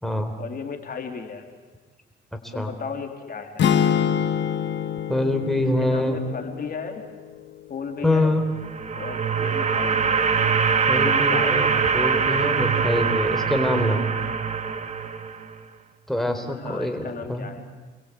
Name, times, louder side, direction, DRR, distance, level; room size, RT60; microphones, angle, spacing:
voice 1, 0.4-1.5 2.5-3.6 5.8-7.1 7.7-8.5 8.9-10.3 11.0-11.6 16.4-17.6, left 5 dB, 50° left, 5 dB, 2.8 m, -35 dB
sound 1, 3.6-7.8, left 8 dB, 65° left, 1.6 m, -26 dB
voice 2, 5.1-6.2 8.0-8.4 10.8-11.7 11.9-14.1 16.1-17.5, left 1 dB, ahead, 5 dB, 3.8 m, -24 dB
sound 2, 8.4-15.6, right 6 dB, 35° right, 1.9 m, -23 dB
29.0 x 22.0 x 8.2 m, 1.3 s
cardioid pair, 90°, 20 cm